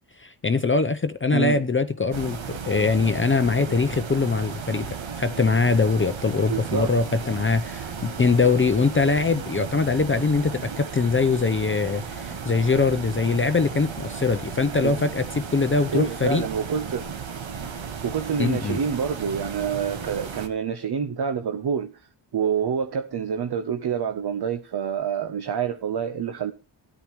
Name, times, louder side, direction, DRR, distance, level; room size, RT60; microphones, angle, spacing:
voice 1, 0.2-16.4 18.4-18.8, left 4 dB, 25° left, 0.6 m, -22 dB
voice 2, 1.3-1.7 6.5-6.9 14.8-15.0 15.9-17.1 18.0-22.1 22.3-26.5, right 7 dB, 55° right, 0.8 m, -27 dB
sound 1, 2.1-20.5, right 6 dB, 75° right, 1.4 m, -35 dB
13.5 x 10.0 x 3.0 m
wide cardioid pair, 85°, 47 cm